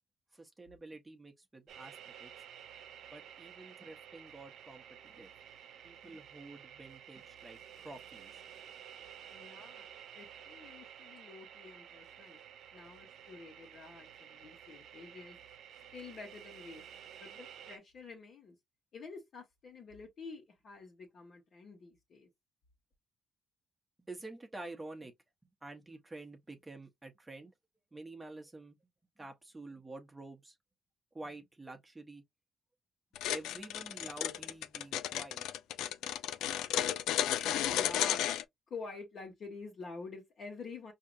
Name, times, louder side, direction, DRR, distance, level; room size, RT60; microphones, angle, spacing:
voice 1, 0.3-1.9 2.2-2.3 3.1-5.3 5.8-8.4 24.1-25.1 25.6-27.5 27.9-28.8 29.2-30.6 31.1-32.2 33.3-35.4, right 2 dB, 15° right, 0.9 m, -49 dB
sound 1, 1.7-17.8, right 9 dB, 75° right, 0.7 m, -52 dB
voice 2, 9.3-9.9 10.1-12.4 12.7-15.4 15.9-16.9 17.2-18.6 18.9-22.3 37.3-38.3 38.7-40.9, left 4 dB, 60° left, 1.3 m, -48 dB
sound 2, 33.2-38.4, left 11 dB, 90° left, 0.3 m, -33 dB
4.9 x 2.8 x 2.5 m
cardioid pair, 90°, 0 cm